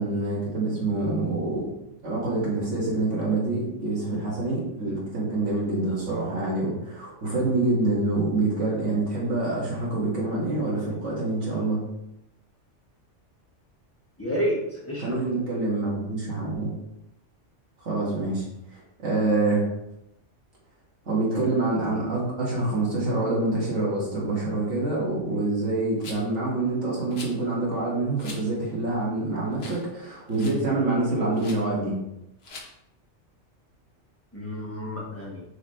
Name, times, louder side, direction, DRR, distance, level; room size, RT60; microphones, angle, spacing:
voice 1, 0.0-1.7 2.0-11.8 15.0-16.7 17.8-18.4 18.7-19.6 21.1-32.0, right 2 dB, 80° right, -5 dB, 2.3 m, -26 dB
voice 2, 14.2-15.2 34.3-35.4, equal, 10° left, -5 dB, 1.7 m, -30 dB
Rattle, 26.0-26.4 27.1-27.4 28.2-28.4 28.9-29.0 29.5-29.9 30.1-30.6 31.3-31.6 32.4-32.7, left 3 dB, 60° left, 1.2 m, -42 dB
6.5 x 4.9 x 3.3 m, 0.85 s
omnidirectional pair, 1.2 m